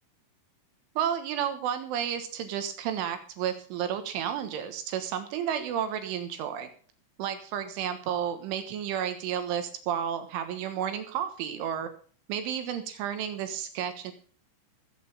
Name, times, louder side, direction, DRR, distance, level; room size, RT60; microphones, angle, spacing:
voice 1, 1.0-6.7 7.2-11.9 12.3-14.1, right 9 dB, 80° right, 8 dB, 3.6 m, -32 dB
18.5 x 8.6 x 5.4 m, 0.43 s
omnidirectional pair, 5.8 m